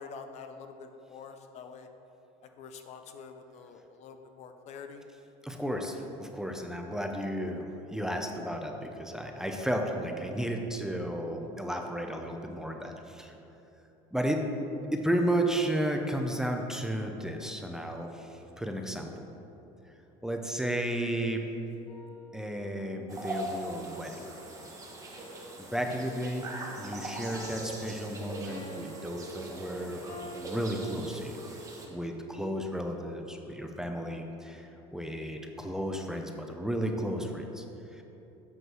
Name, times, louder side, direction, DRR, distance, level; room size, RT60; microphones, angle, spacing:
voice 1, 0.0-1.9 2.6-5.0, left 5 dB, 50° left, 7 dB, 0.5 m, -46 dB
voice 2, 5.4-13.3 14.1-14.4 14.9-19.3 20.2-21.4 22.3-24.3 25.7-26.4 26.8-30.0 30.3-31.4 31.9-37.6 37.9-38.0, right 1 dB, 5° right, 3 dB, 0.5 m, -33 dB
sound 1, 21.9-22.9 27.3-30.5, equal, 30° left, 0.9 m, -47 dB
sound 2, 23.1-31.9, right 1 dB, 20° right, 1.1 m, -41 dB
7.9 x 3.1 x 6.1 m, 2.9 s
supercardioid pair, 120°, 15 cm